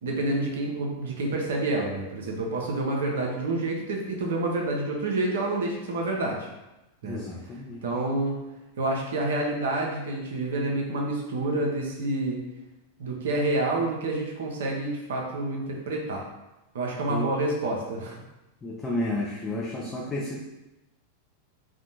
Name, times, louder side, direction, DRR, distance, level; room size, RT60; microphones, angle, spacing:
voice 1, 0.0-6.5 7.0-7.2 7.8-8.4 8.8-12.4 13.0-16.2 16.7-18.2, right 2 dB, 60° right, -1 dB, 0.5 m, -28 dB
voice 2, 7.0-7.8 17.1-17.3 18.6-20.4, left 1 dB, 15° left, -3 dB, 0.3 m, -31 dB
2.5 x 2.1 x 2.7 m, 0.97 s
figure-of-eight pair, 90°, 0 cm